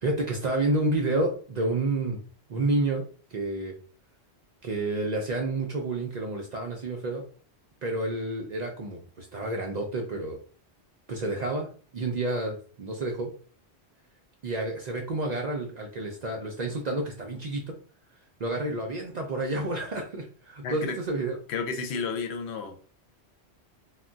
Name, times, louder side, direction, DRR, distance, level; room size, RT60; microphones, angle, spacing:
voice 1, 0.0-2.2 2.5-3.0 3.3-3.7 4.6-7.2 7.8-10.4 11.1-11.7 11.9-13.3 14.4-17.6 18.4-21.4, right 2 dB, 55° right, 1 dB, 0.5 m, -29 dB
voice 2, 20.6-21.0 21.5-22.8, left 5 dB, 80° left, 5 dB, 0.9 m, -31 dB
2.2 x 2.1 x 3.7 m, 0.41 s
omnidirectional pair, 1.1 m